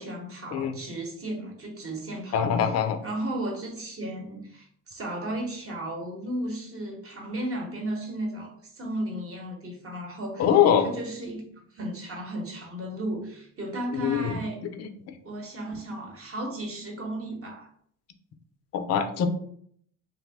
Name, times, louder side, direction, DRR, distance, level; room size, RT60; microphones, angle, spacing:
voice 1, 0.0-2.7 3.0-10.5 10.8-14.6 15.2-17.7, right 1 dB, 35° right, 1 dB, 1.0 m, -34 dB
voice 2, 2.3-3.0 10.4-10.9 13.9-14.4 14.8-14.9 18.7-19.3, left 8 dB, 40° left, 8 dB, 0.4 m, -23 dB
2.6 x 2.1 x 3.3 m, 0.64 s
supercardioid pair, 80°, 39 cm